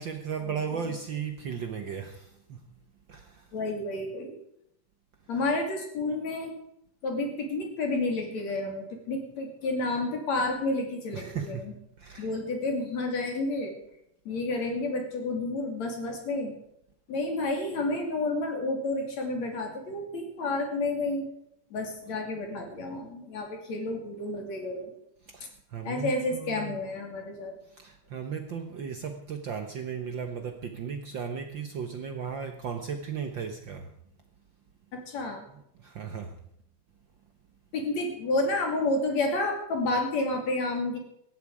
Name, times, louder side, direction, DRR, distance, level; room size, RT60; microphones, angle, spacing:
voice 1, 0.0-2.7 3.1-3.5 11.1-12.3 25.2-26.8 27.6-34.0 35.5-36.4, right 6 dB, 80° right, 5 dB, 1.0 m, -36 dB
voice 2, 3.5-4.4 5.3-6.5 7.0-11.7 12.2-13.8 14.3-16.5 17.1-21.3 21.7-24.9 25.8-27.5 34.9-35.4 37.7-41.0, left 2 dB, 55° left, 3 dB, 4.0 m, -30 dB
18.0 x 14.0 x 4.9 m, 0.74 s
omnidirectional pair, 3.8 m